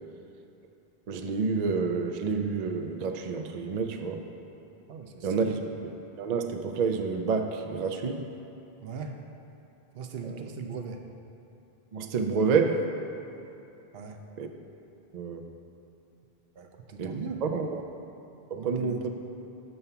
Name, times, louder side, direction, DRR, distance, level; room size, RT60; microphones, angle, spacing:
voice 1, 1.1-4.2 5.2-8.3 10.2-10.3 11.9-12.8 14.4-14.5 15.1-15.5 17.0-17.2 17.4-17.8 18.5-19.1, right 5 dB, 55° right, 4 dB, 0.5 m, -29 dB
voice 2, 4.9-5.5 8.8-9.2 9.9-11.0 13.9-14.2 16.5-17.4 18.6-19.0, right 5 dB, 75° right, 5 dB, 0.8 m, -39 dB
6.9 x 5.5 x 5.6 m, 2.8 s
omnidirectional pair, 1.0 m